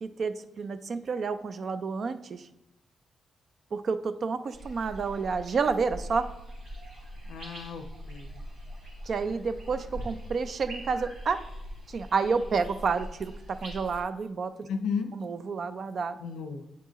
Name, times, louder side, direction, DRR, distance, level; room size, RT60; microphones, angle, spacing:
voice 1, 0.0-2.5 3.7-6.3 9.1-11.4 11.9-14.7 15.1-16.2, right 5 dB, 60° right, 11 dB, 0.4 m, -30 dB
sound 1, 4.5-14.0, equal, 85° right, 2.2 m, -42 dB
voice 2, 7.3-8.3 14.7-15.1 16.2-16.7, left 6 dB, 85° left, 8 dB, 0.5 m, -34 dB
8.2 x 4.5 x 3.0 m, 0.90 s
supercardioid pair, 55°, 0 cm